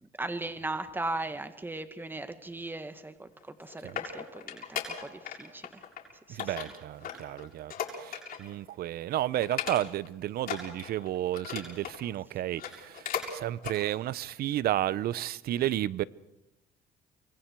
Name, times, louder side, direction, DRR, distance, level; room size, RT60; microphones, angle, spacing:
voice 1, 0.0-5.8 6.3-6.7, right 2 dB, 10° right, 2.0 m, -38 dB
sound 1, 3.4-5.4 5.6-6.0 6.4-8.5 8.9-9.0 9.4-10.1 10.4-12.0 12.5-13.3 13.6-13.8 14.3-14.4, left 8 dB, 55° left, 7.2 m, -37 dB
voice 2, 6.3-16.0, right 13 dB, 65° right, 0.8 m, -32 dB
26.0 x 23.5 x 4.8 m
cardioid pair, 110°, 17 cm